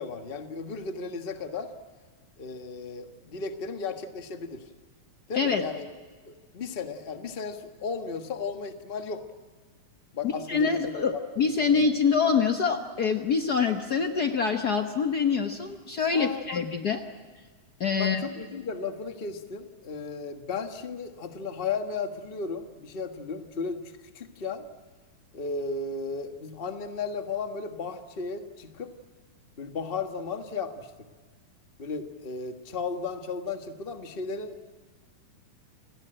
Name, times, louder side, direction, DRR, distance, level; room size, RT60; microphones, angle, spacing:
voice 1, 0.0-1.7 2.4-4.6 5.3-5.9 6.2-9.2 10.1-11.8 16.1-16.6 18.0-24.6 25.3-28.9 29.6-30.9 31.8-34.6, left 4 dB, 45° left, 7 dB, 0.7 m, -35 dB
voice 2, 10.2-17.0 17.8-18.2, left 5 dB, 90° left, 6 dB, 0.8 m, -25 dB
29.5 x 18.0 x 9.0 m, 1.5 s
omnidirectional pair, 3.6 m